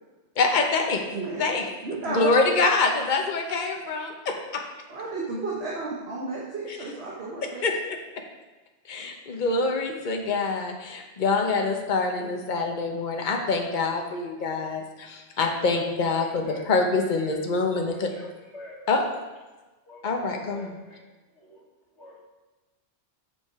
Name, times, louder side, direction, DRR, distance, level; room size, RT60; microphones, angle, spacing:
voice 1, 0.4-1.0 1.4-4.6 6.7-6.8 7.6-7.8 8.9-18.1 18.9-19.0 20.0-20.8, left 3 dB, 45° left, 2 dB, 1.0 m, -25 dB
voice 2, 1.1-1.5 1.8-2.3 4.9-7.6, right 3 dB, 65° right, -5 dB, 1.6 m, -32 dB
voice 3, 18.1-18.7 19.9-21.0 21.4-21.6 22.0-22.1, left 1 dB, 80° left, -8 dB, 1.8 m, -46 dB
7.3 x 6.9 x 4.7 m, 1.2 s
omnidirectional pair, 1.2 m